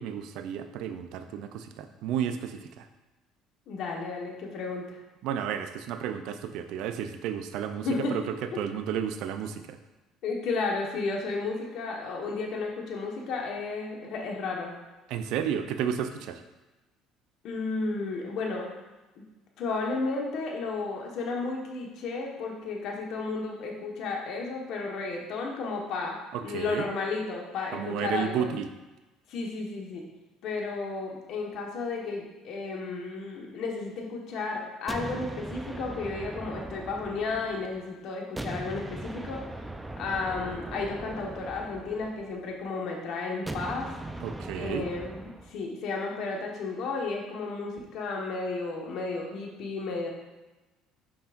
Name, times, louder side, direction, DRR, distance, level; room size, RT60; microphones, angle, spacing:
voice 1, 0.0-2.9 5.2-9.8 15.1-16.4 26.3-26.9 27.7-28.7 44.2-44.9, right 8 dB, 70° right, 9 dB, 0.5 m, -32 dB
voice 2, 3.7-5.0 7.8-8.1 8.5-8.6 10.2-14.7 17.4-18.7 19.6-28.5 29.3-30.0 30.4-39.4 40.0-43.9 44.6-50.1, left 3 dB, 60° left, 0 dB, 1.4 m, -33 dB
sound 1, 34.9-37.9 38.4-42.6 43.5-45.6, right 1 dB, 10° right, 0.6 m, -39 dB
8.5 x 5.6 x 2.6 m, 1.1 s
hypercardioid pair, 70°, 0 cm